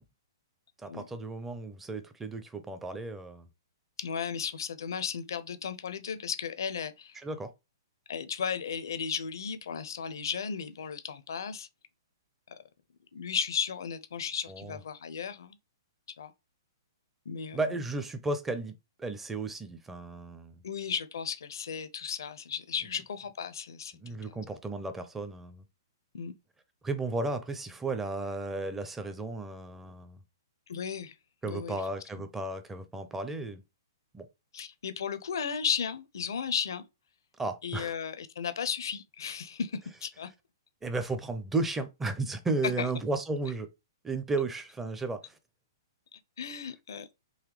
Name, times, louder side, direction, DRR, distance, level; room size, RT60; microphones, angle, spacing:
voice 1, 0.8-3.5 7.2-7.5 14.5-14.8 17.5-18.7 19.0-20.6 23.9-25.6 26.8-30.2 31.4-33.6 34.1-34.3 37.4-37.9 40.8-43.7 44.0-45.4, right 3 dB, 10° right, 0.6 m, -34 dB
voice 2, 4.0-7.2 8.1-11.7 12.5-12.6 13.1-15.6 16.2-16.3 17.3-17.8 20.6-24.4 26.1-26.3 30.7-31.1 31.4-31.8 32.2-32.3 34.5-36.8 37.6-40.3 42.8-42.9 46.1-47.1, left 7 dB, 70° left, 0.6 m, -35 dB
4.0 x 2.7 x 3.1 m
hypercardioid pair, 125°, 2 cm